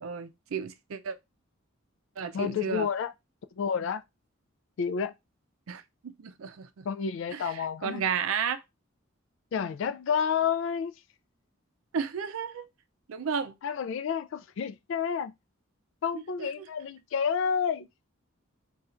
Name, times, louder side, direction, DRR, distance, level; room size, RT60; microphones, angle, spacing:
voice 1, 0.0-1.2 2.2-2.9 5.7-6.9 7.3-8.6 11.9-12.7 13.1-13.6 16.1-16.7, right 6 dB, 85° right, 0.4 m, -33 dB
voice 2, 2.3-3.1 3.6-4.0 4.8-5.1 6.8-8.0 9.5-10.9 13.6-15.3 16.0-17.9, left 7 dB, 65° left, 0.3 m, -30 dB
4.2 x 2.4 x 2.5 m
head